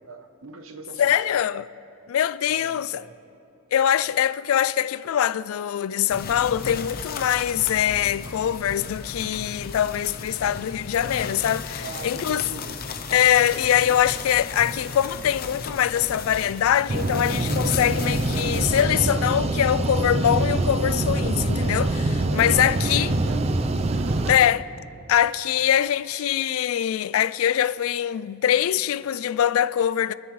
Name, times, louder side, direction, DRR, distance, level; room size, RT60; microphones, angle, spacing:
voice 1, 0.0-1.4 2.5-3.2 11.7-13.0 13.8-14.3 22.2-24.5 25.8-26.1, right 3 dB, 70° right, 1.0 m, -42 dB
voice 2, 1.0-1.7 2.1-3.0 3.7-12.4 13.1-23.1 24.3-24.6 25.1-30.1, left 10 dB, 80° left, 0.3 m, -23 dB
sound 1, 6.1-18.8, left 4 dB, 45° left, 0.7 m, -35 dB
sound 2, 16.9-24.3, right 2 dB, 30° right, 0.5 m, -24 dB
24.5 x 9.5 x 3.2 m
head